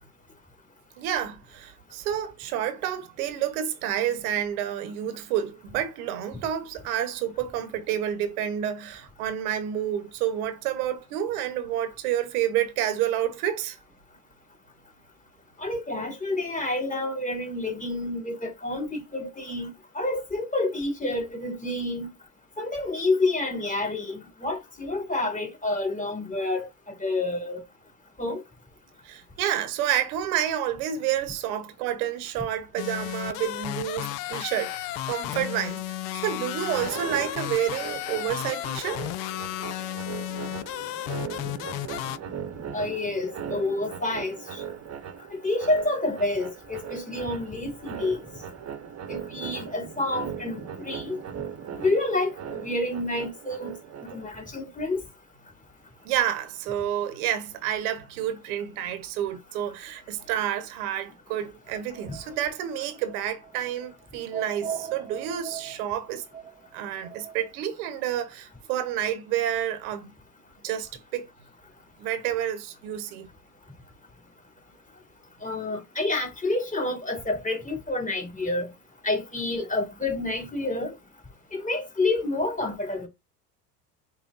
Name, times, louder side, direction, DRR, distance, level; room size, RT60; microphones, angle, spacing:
voice 1, 1.0-13.8 29.0-39.0 56.0-66.2 66.7-70.1 70.6-71.3 72.0-73.3, right 10 dB, 65° right, 1.0 m, -29 dB
voice 2, 15.6-22.1 22.6-27.6 28.2-28.4 42.7-44.6 45.3-48.2 49.1-51.2 51.8-53.7 54.0-55.0 62.1-62.2 75.4-78.7 79.0-80.9 81.5-83.1, left 2 dB, 15° left, 2.3 m, -29 dB
sound 1, 32.8-42.2, left 14 dB, 60° left, 0.5 m, -33 dB
sound 2, 36.6-54.5, right 8 dB, 35° right, 1.0 m, -39 dB
sound 3, 61.9-67.5, right 7 dB, 10° right, 0.6 m, -40 dB
5.4 x 2.2 x 3.9 m
hypercardioid pair, 70°, 47 cm